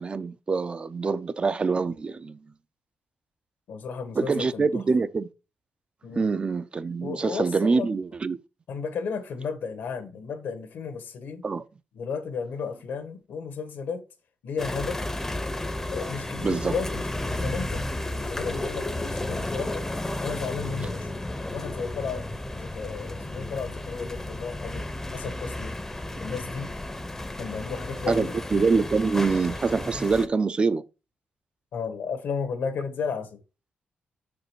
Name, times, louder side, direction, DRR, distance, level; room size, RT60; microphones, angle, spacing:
voice 1, 0.0-2.4 4.2-5.3 6.2-8.4 11.4-11.6 16.4-16.7 28.1-30.8, right 4 dB, 30° right, 0.4 m, -25 dB
voice 2, 3.7-4.8 6.0-6.3 7.0-7.9 8.7-11.4 11.9-14.0 14.4-15.0 15.9-19.8 20.2-21.2 21.5-22.2 22.5-25.7 26.2-26.7 27.4-28.3 31.7-33.4, left 5 dB, 75° left, 1.3 m, -34 dB
sound 1, 14.6-30.3, left 1 dB, 10° left, 0.6 m, -33 dB
6.3 x 5.1 x 4.5 m
cardioid pair, 130°, 3 cm